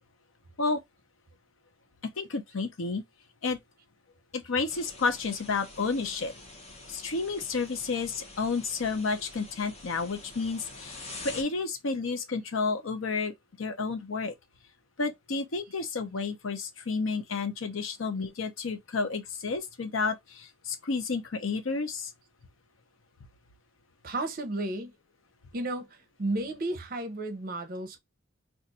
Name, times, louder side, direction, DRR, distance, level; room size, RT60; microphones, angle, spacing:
voice 1, 2.2-3.0 3.4-3.6 4.3-6.3 6.9-14.3 15.0-22.1, left 4 dB, 75° left, 0.7 m, -31 dB
sound 1, 4.7-11.4, left 2 dB, 30° left, 0.8 m, -46 dB
voice 2, 24.0-24.9 25.5-28.0, right 2 dB, 45° right, 0.7 m, -33 dB
2.5 x 2.4 x 4.1 m
head